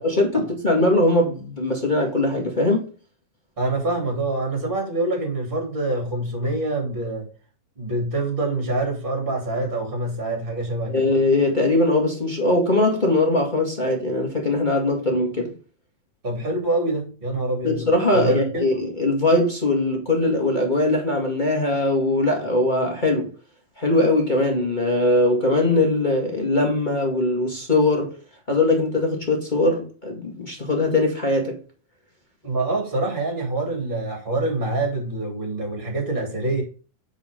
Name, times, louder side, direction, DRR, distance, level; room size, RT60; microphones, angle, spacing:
voice 1, 0.0-2.9 10.9-15.5 17.6-23.3 23.8-28.1 28.5-31.6, left 2 dB, 20° left, 1.2 m, -21 dB
voice 2, 3.6-7.3 7.8-11.1 16.2-17.8 18.1-18.7 32.4-36.6, right 2 dB, 15° right, 2.5 m, -25 dB
8.9 x 4.9 x 5.2 m
omnidirectional pair, 4.1 m